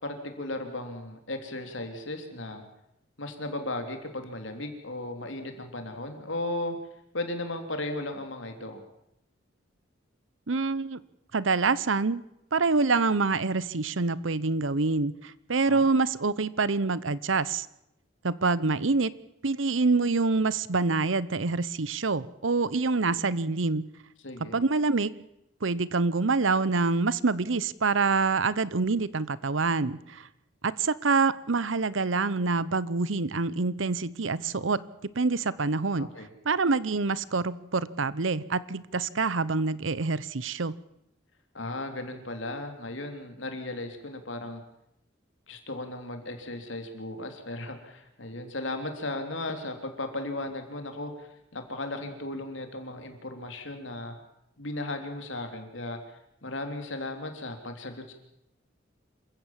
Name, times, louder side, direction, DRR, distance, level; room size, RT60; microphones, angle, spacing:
voice 1, 0.0-2.6 3.2-6.8 7.1-8.8 15.5-15.9 24.2-24.6 36.0-36.3 41.5-44.6 45.5-54.2 54.6-58.1, left 2 dB, 75° left, 5 dB, 3.6 m, -36 dB
voice 2, 10.5-11.0 11.3-12.2 12.5-17.7 18.2-19.1 19.4-23.9 24.5-25.1 25.6-30.3 30.6-36.1 36.4-40.7, right 4 dB, 80° right, 18 dB, 0.9 m, -26 dB
27.0 x 15.5 x 7.5 m, 0.83 s
head